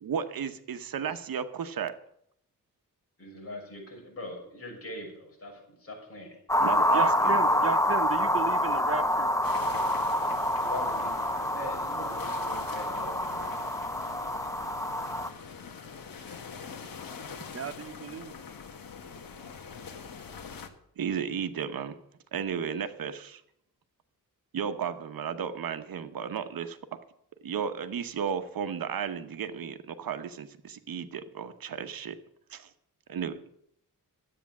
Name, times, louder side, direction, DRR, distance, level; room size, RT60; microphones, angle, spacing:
voice 1, 0.0-2.0 6.6-7.6 21.0-22.0 22.3-23.4 24.5-26.8 27.4-32.2 32.5-32.7 33.1-33.4, right 7 dB, 75° right, 9 dB, 1.1 m, -34 dB
voice 2, 3.2-6.4 10.6-13.5, left 1 dB, 40° left, -1 dB, 6.3 m, -42 dB
sound 1, 6.5-15.3, left 1 dB, 10° left, 0.8 m, -27 dB
voice 3, 6.9-9.3 17.5-18.3, right 6 dB, 40° right, 12 dB, 0.6 m, -34 dB
sound 2, 9.4-20.7, left 6 dB, 75° left, 1.5 m, -44 dB
13.0 x 8.7 x 7.3 m, 0.73 s
wide cardioid pair, 105°, 35 cm